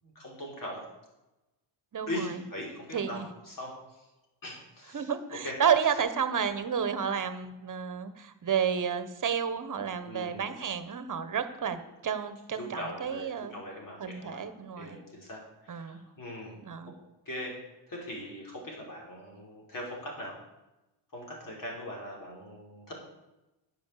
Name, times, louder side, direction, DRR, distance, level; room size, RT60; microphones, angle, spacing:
voice 1, 0.0-0.8 2.1-3.7 4.0-4.1 4.4-5.1 5.4-5.5 5.9-6.0 10.0-10.6 12.6-14.4 14.8-16.6 17.3-17.5 17.9-20.3 21.1-23.0, left 1 dB, 45° left, -2 dB, 5.5 m, -40 dB
voice 2, 1.9-2.4 2.9-3.3 4.9-13.5 14.0-15.0 15.7-16.0 16.6-16.9, right 7 dB, 45° right, 11 dB, 1.4 m, -31 dB
10.5 x 7.8 x 8.5 m, 0.99 s
cardioid pair, 100°, 44 cm